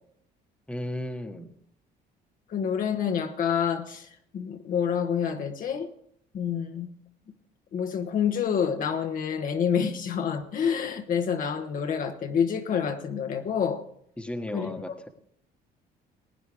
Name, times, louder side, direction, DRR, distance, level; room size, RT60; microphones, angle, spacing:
voice 1, 0.7-1.5 14.2-15.1, left 1 dB, 5° left, 5 dB, 1.4 m, -35 dB
voice 2, 2.5-5.9 6.3-6.9 7.7-13.8 14.5-14.7, left 7 dB, 55° left, 6 dB, 1.2 m, -28 dB
20.0 x 9.3 x 3.5 m, 0.67 s
cardioid pair, 110°, 17 cm